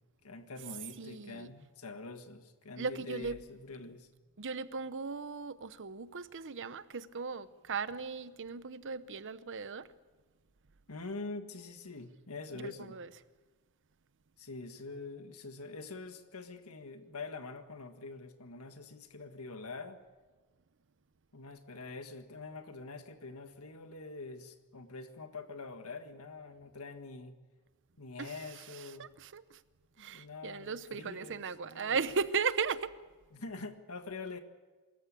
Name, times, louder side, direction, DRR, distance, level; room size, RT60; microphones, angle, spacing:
voice 1, 0.2-4.1 10.9-13.0 14.4-20.0 21.3-27.3 28.0-29.1 30.0-32.0 33.3-34.4, left 3 dB, 75° left, 1.7 m, -45 dB
voice 2, 1.0-1.5 2.8-3.4 4.4-9.9 12.5-13.1 28.2-29.6 30.0-32.9, right 5 dB, 60° right, 0.8 m, -37 dB
25.0 x 14.0 x 8.4 m
head